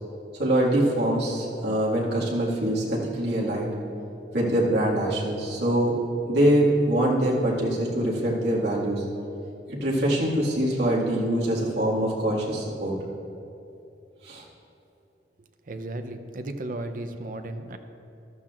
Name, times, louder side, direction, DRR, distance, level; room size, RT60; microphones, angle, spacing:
voice 1, 0.4-3.7 4.3-6.0 6.3-9.0 9.7-12.9 14.2-14.4, right 1 dB, 70° right, -5 dB, 1.9 m, -24 dB
voice 2, 15.7-17.8, right 2 dB, 50° right, 7 dB, 0.6 m, -34 dB
14.5 x 12.0 x 2.5 m, 2.8 s
head